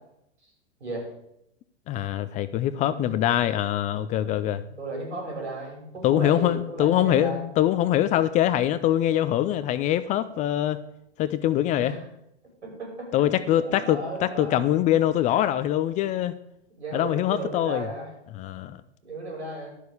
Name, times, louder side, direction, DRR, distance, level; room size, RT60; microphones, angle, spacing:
voice 1, 1.9-4.6 6.0-10.8 11.2-11.9 13.1-16.3 16.9-17.9 18.3-18.8, left 12 dB, 25° left, 14 dB, 0.4 m, -23 dB
voice 2, 2.7-3.1 4.1-7.4 11.8-12.1 12.6-14.6 15.2-15.3 16.8-18.1 19.0-19.7, right 2 dB, 80° right, 0 dB, 5.6 m, -35 dB
11.5 x 6.4 x 7.0 m, 0.81 s
hypercardioid pair, 105°, 33 cm